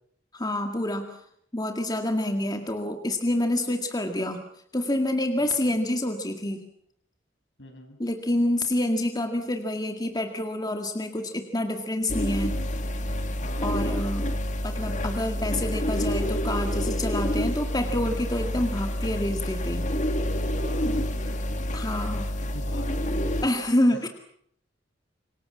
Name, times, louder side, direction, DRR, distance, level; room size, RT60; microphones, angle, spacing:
voice 1, 0.3-1.2 1.5-4.4 4.7-6.6 8.0-12.6 13.6-14.3 14.6-19.8 20.8-21.0 21.7-22.3 23.4-24.1, left 1 dB, 20° left, 5 dB, 2.0 m, -27 dB
voice 2, 7.6-8.0 13.4-14.0 20.6-21.5 22.4-23.3, left 1 dB, 65° left, 5 dB, 6.6 m, -43 dB
sound 1, 12.1-23.5, equal, 40° left, 2.3 m, -28 dB
27.5 x 24.0 x 7.4 m, 0.69 s
head